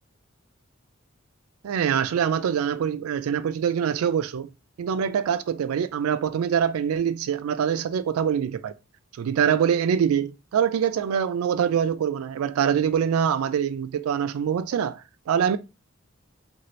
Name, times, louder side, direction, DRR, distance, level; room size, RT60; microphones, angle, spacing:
voice 1, 1.6-4.5 4.8-8.7 9.2-15.6, right 8 dB, 85° right, 0.3 m, -24 dB
2.7 x 2.4 x 3.0 m
head